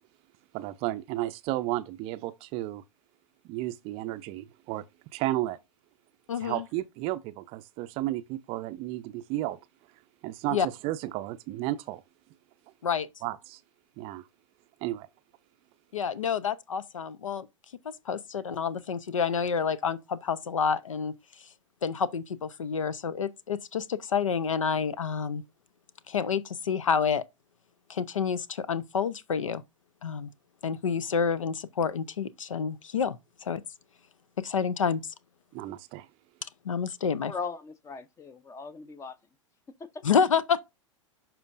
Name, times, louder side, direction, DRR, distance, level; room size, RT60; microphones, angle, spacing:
voice 1, 0.5-2.8 3.4-4.8 5.1-5.6 6.4-9.6 10.2-12.0 13.2-13.6 14.0-14.2 14.8-15.1 35.5-36.1, right 16 dB, 35° right, 0.5 m, -33 dB
voice 2, 6.3-6.6 10.5-10.7 12.8-13.1 15.9-17.5 17.8-21.1 21.8-25.4 26.1-27.2 27.9-29.6 30.0-30.3 30.6-33.2 33.4-33.6 34.4-35.0 36.6-37.3 40.0-40.6, left 6 dB, 75° left, 0.5 m, -28 dB
voice 3, 37.3-39.2 39.8-40.0, left 5 dB, 15° left, 0.6 m, -39 dB
11.5 x 4.4 x 2.5 m
figure-of-eight pair, 95°, 17 cm